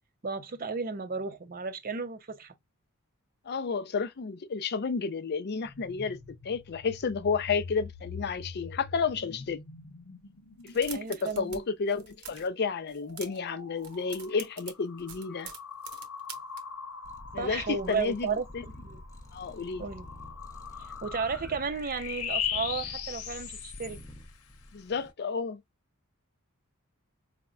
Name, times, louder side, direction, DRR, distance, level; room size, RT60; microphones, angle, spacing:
voice 1, 0.2-2.5 10.9-11.6 17.4-19.0 19.8-20.0 20.8-24.0, right 5 dB, 40° right, 0.6 m, -34 dB
voice 2, 3.5-6.2 6.4-9.6 10.6-15.5 17.3-18.6 19.3-19.8 24.7-25.6, left 5 dB, 50° left, 0.5 m, -31 dB
sound 1, 5.6-11.6 12.2-24.3, left 8 dB, 90° left, 0.8 m, -41 dB
sound 2, 10.6-11.6 11.9-12.5 12.9-13.5 13.8-16.6, right 7 dB, 85° right, 1.0 m, -44 dB
Purr, 17.0-25.1, left 1 dB, 15° left, 0.8 m, -48 dB
5.0 x 2.1 x 2.4 m
head